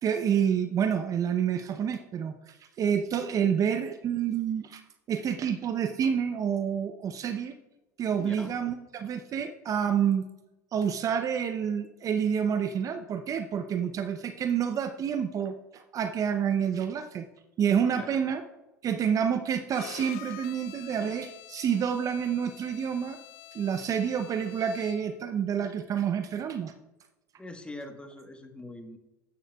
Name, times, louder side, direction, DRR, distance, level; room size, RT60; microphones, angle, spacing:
voice 1, 0.0-4.8 5.1-7.5 8.0-10.3 10.7-17.2 17.6-18.4 18.8-23.2 23.5-26.7, right 8 dB, 35° right, 9 dB, 0.7 m, -28 dB
voice 2, 8.2-8.5 17.9-18.2 27.4-29.0, left 2 dB, 10° left, 6 dB, 1.3 m, -43 dB
Bowed string instrument, 19.7-25.3, left 15 dB, 60° left, 0.6 m, -47 dB
13.0 x 9.8 x 2.3 m, 1.0 s
hypercardioid pair, 95°, 10 cm